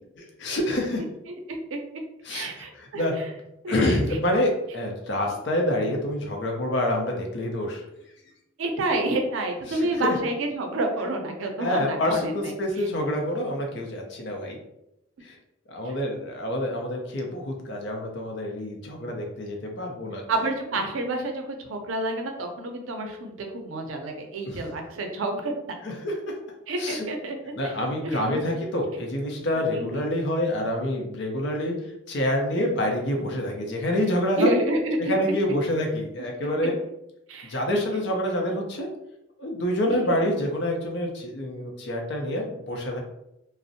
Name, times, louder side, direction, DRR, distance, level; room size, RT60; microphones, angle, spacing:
voice 1, 0.2-1.0 2.2-3.1 3.7-7.8 9.7-10.1 11.6-14.6 15.2-15.4 15.7-20.2 24.5-24.7 25.8-26.1 26.8-27.0 27.5-31.7 32.1-34.6 35.0-36.8 37.4-38.9 39.4-43.0, left 1 dB, 60° left, 1 dB, 0.5 m, -27 dB
voice 2, 1.5-1.8 2.3-3.1 3.6-4.2 8.6-12.5 20.3-25.5 26.7-27.4 27.6-27.7 28.0-28.4 29.7-30.1 34.4-35.2 37.3-37.6 39.9-40.0, right 2 dB, 85° right, 4 dB, 0.5 m, -29 dB
2.5 x 2.0 x 2.6 m, 0.85 s
head